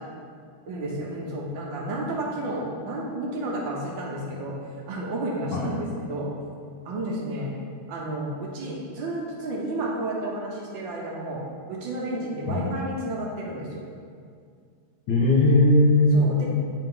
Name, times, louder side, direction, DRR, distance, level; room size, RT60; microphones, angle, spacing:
voice 1, 0.7-4.6 4.9-6.3 6.8-7.5 7.9-11.4 11.7-13.9 16.1-16.5, right 1 dB, 70° right, -2 dB, 1.3 m, -31 dB
voice 2, 15.1-16.5, left 1 dB, 65° left, -2 dB, 1.3 m, -19 dB
7.6 x 3.5 x 3.7 m, 2.1 s
omnidirectional pair, 2.4 m